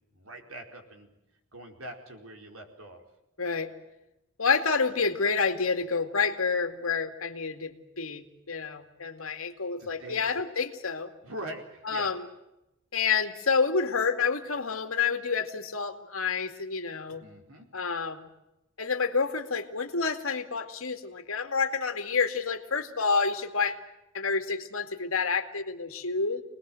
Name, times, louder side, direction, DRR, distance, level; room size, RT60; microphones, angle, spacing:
voice 1, 0.1-1.1 1.5-3.0 9.8-10.2 11.2-12.1 17.2-17.7, right 1 dB, 75° right, 4 dB, 4.6 m, -43 dB
voice 2, 3.4-3.7 4.4-11.1 11.9-12.3 12.9-17.2 17.7-18.3 18.8-23.8 24.1-26.4, left 5 dB, 75° left, 6 dB, 2.3 m, -28 dB
26.0 x 20.0 x 7.8 m, 0.91 s
head